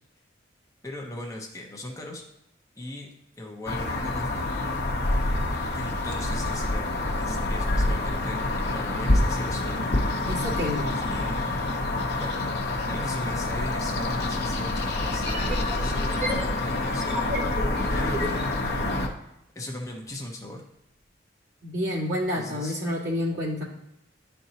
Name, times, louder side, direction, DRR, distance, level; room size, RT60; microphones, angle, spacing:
voice 1, 0.8-2.2 2.8-3.1 3.4-4.5 5.7-6.9 7.2-9.8 10.6-11.5 12.1-17.3 17.7-18.5 19.2-20.6 22.3-22.8, left 1 dB, 15° left, 0 dB, 0.8 m, -38 dB
sound 1, 3.7-19.1, left 2 dB, 60° left, 0.9 m, -27 dB
voice 2, 10.3-11.0 17.7-18.3 21.6-23.6, left 1 dB, 75° right, -5 dB, 2.1 m, -29 dB
sound 2, 15.0-19.0, equal, 35° right, 1.2 m, -34 dB
10.5 x 4.4 x 2.8 m, 0.84 s
head